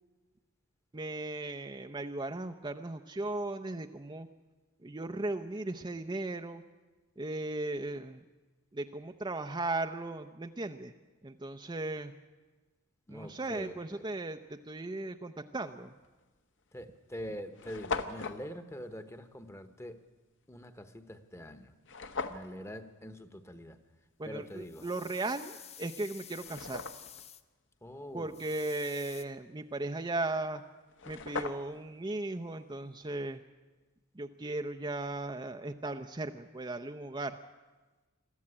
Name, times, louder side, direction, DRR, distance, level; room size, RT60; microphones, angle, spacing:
voice 1, 0.9-4.3 4.8-6.6 7.2-8.2 8.7-10.9 11.2-12.1 13.1-15.9 24.2-26.9 28.1-30.6 31.1-33.4 34.1-37.4, right 2 dB, 20° right, 6 dB, 0.6 m, -37 dB
voice 2, 13.1-14.0 16.7-20.0 20.5-21.7 22.3-23.8 24.2-24.9 27.8-28.4, equal, 10° left, 10 dB, 1.1 m, -44 dB
sound 1, 16.0-16.2 16.9-17.0 17.2-17.3 17.5-18.4 21.8-22.5 25.4-25.5 26.1-27.2 30.6-30.7 30.9-31.9, left 4 dB, 55° left, 1.1 m, -38 dB
sound 2, 24.5-27.4 28.3-29.2, left 9 dB, 30° left, 0.7 m, -50 dB
22.0 x 14.0 x 9.8 m, 1.2 s
head